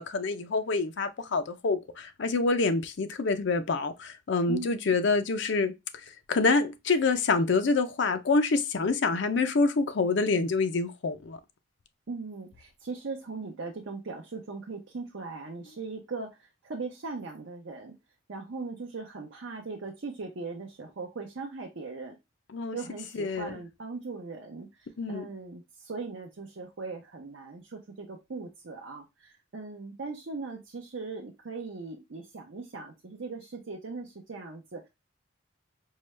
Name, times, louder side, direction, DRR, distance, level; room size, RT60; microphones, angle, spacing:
voice 1, 0.0-5.7 6.3-11.4 22.5-22.8 23.1-23.6 25.0-25.3, left 3 dB, 60° left, 0.5 m, -26 dB
voice 2, 12.1-17.9 18.3-22.2 22.7-34.9, right 4 dB, 65° right, 0.7 m, -39 dB
4.6 x 2.2 x 3.1 m
head